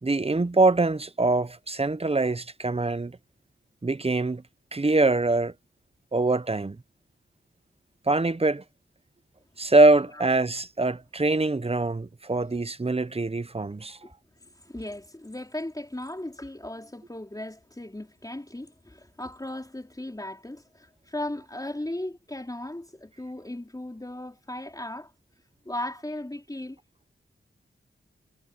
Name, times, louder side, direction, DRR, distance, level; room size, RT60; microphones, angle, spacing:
voice 1, 0.0-3.2 3.8-4.4 4.7-5.5 6.1-6.8 8.1-8.6 9.6-14.0, right 2 dB, 30° right, 1.1 m, -23 dB
voice 2, 14.4-25.1 25.6-26.8, left 1 dB, 20° left, 4.2 m, -37 dB
cardioid pair, 45°, 21 cm